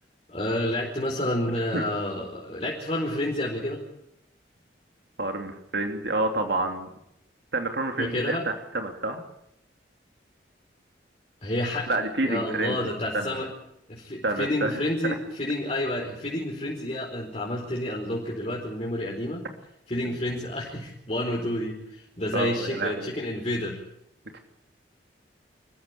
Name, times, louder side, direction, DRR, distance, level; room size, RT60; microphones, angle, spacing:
voice 1, 0.3-3.8 8.0-8.4 11.4-13.5 13.9-19.4 19.9-23.8, left 1 dB, 35° left, -2 dB, 4.7 m, -29 dB
voice 2, 5.2-6.9 7.5-9.2 11.9-13.4 14.2-15.2 22.3-23.1 24.3-24.4, right 2 dB, 70° right, 4 dB, 2.9 m, -29 dB
28.5 x 15.0 x 8.4 m, 0.79 s
head